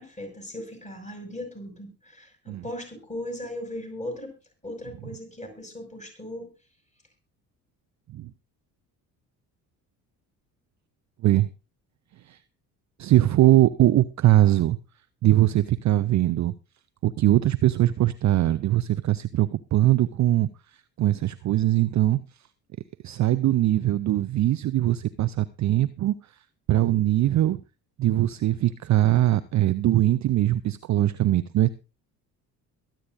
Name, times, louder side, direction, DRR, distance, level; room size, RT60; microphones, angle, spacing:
voice 1, 0.0-4.3 4.6-6.5, left 1 dB, 15° left, 6.2 m, -38 dB
voice 2, 13.0-14.8 15.2-16.5 17.0-22.2 23.0-26.4 26.7-27.6 28.0-31.7, right 14 dB, 35° right, 0.6 m, -21 dB
22.0 x 8.9 x 2.6 m
figure-of-eight pair, 50°, 50 cm